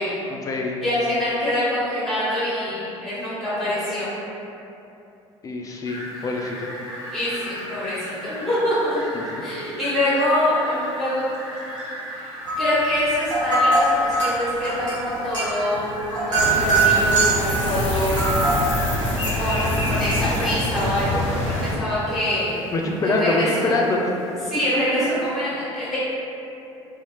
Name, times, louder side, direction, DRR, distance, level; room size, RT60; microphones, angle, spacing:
voice 1, 0.3-0.8 5.4-6.7 9.1-9.5 22.7-24.0 24.8-25.0, left 2 dB, 25° left, 0 dB, 0.3 m, -25 dB
voice 2, 0.8-4.1 7.1-8.7 9.4-11.3 12.6-18.4 19.3-22.6 23.0-23.8 24.5-26.0, left 1 dB, ahead, -11 dB, 1.2 m, -25 dB
Fowl, 5.9-25.3, equal, 55° right, 1.3 m, -38 dB
sound 1, 12.4-12.8 13.1-17.5 18.1-18.7, right 2 dB, 85° right, 0.9 m, -21 dB
sound 2, 16.3-21.7, left 1 dB, 90° left, 0.4 m, -25 dB
2.7 x 2.1 x 3.0 m, 2.8 s
figure-of-eight pair, 55°, 16 cm